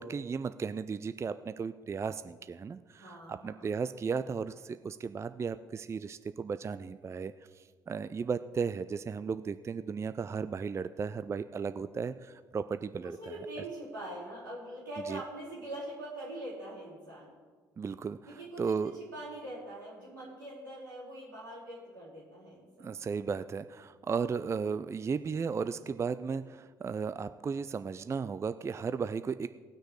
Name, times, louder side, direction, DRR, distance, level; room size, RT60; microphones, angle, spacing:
voice 1, 0.0-13.1 15.1-15.2 17.8-18.9 22.8-29.5, right 5 dB, 25° right, 12 dB, 0.4 m, -35 dB
voice 2, 2.9-3.7 13.0-17.3 18.3-22.9, right 1 dB, 90° right, -10 dB, 4.1 m, -43 dB
18.5 x 6.3 x 4.8 m, 1.5 s
figure-of-eight pair, 50°, 11 cm